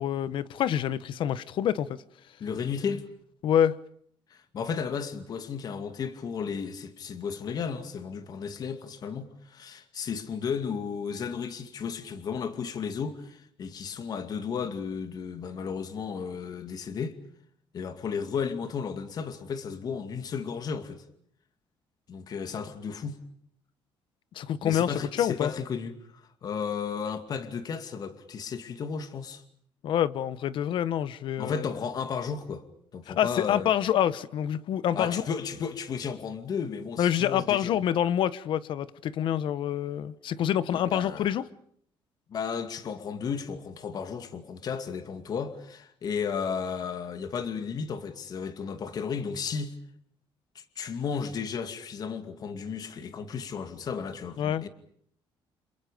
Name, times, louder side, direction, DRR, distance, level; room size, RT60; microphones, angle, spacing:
voice 1, 0.0-2.0 3.4-3.8 24.3-25.5 29.8-31.7 33.1-35.2 37.0-41.4 54.4-54.7, left 10 dB, 65° left, 1.2 m, -27 dB
voice 2, 2.4-3.1 4.3-17.1 17.7-21.0 22.1-23.2 24.6-29.4 31.4-32.7 32.9-33.7 34.9-37.8 40.7-41.4 42.3-49.8 50.5-54.7, left 6 dB, 45° left, 2.4 m, -34 dB
30.0 x 28.5 x 5.2 m
cardioid pair, 150°, 9 cm